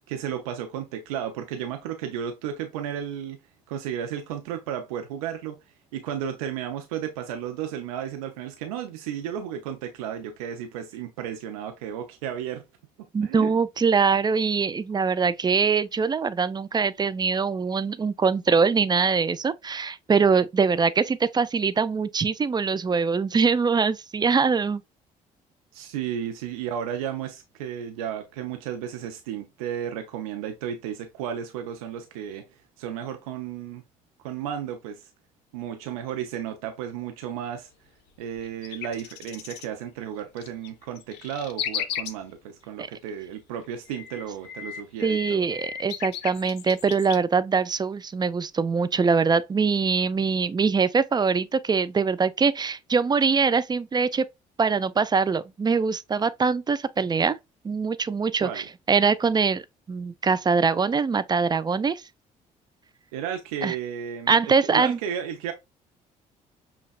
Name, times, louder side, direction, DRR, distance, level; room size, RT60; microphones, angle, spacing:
voice 1, 0.1-3.4 3.7-5.6 5.9-12.6 13.2-13.5 25.7-32.5 32.8-33.8 34.2-35.1 35.5-37.7 38.2-45.5 58.4-58.7 63.1-65.5, right 9 dB, 90° right, 0.5 m, -33 dB
voice 2, 13.1-24.8 42.8-42.9 45.0-54.3 54.6-57.3 57.6-59.6 59.9-62.0 63.6-63.8 64.3-65.0, right 5 dB, 25° right, 0.4 m, -23 dB
sound 1, 38.4-39.7 40.2-42.1 43.6-47.2, left 9 dB, 70° left, 0.5 m, -35 dB
5.5 x 2.3 x 2.3 m
hypercardioid pair, 60°, 18 cm